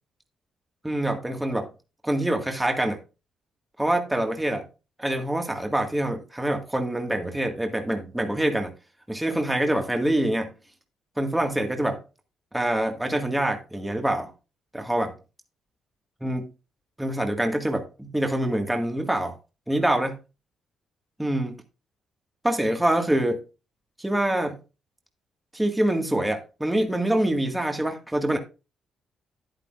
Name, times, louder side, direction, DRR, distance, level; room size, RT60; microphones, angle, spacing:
voice 1, 0.8-1.7 2.0-3.0 3.8-4.7 5.0-8.7 9.1-10.5 11.2-12.0 12.5-14.3 14.7-15.1 16.2-16.5 17.0-19.3 19.7-20.2 21.2-21.6 22.4-23.4 24.0-24.6 25.5-28.4, right 1 dB, 10° right, 4 dB, 2.0 m, -25 dB
10.5 x 10.0 x 2.6 m, 0.30 s
cardioid pair, 90°, 0 cm